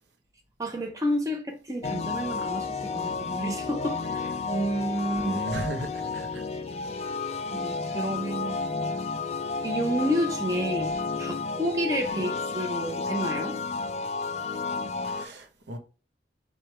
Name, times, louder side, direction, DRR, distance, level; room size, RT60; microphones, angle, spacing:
voice 1, 0.6-5.4 7.5-8.6 9.6-13.6, equal, 20° right, 0.6 m, -30 dB
sound 1, 1.8-15.3, left 4 dB, 35° left, 0.3 m, -31 dB
voice 2, 5.2-6.4 12.1-12.2 15.1-15.8, right 1 dB, 80° right, 0.7 m, -35 dB
4.7 x 2.3 x 4.3 m
head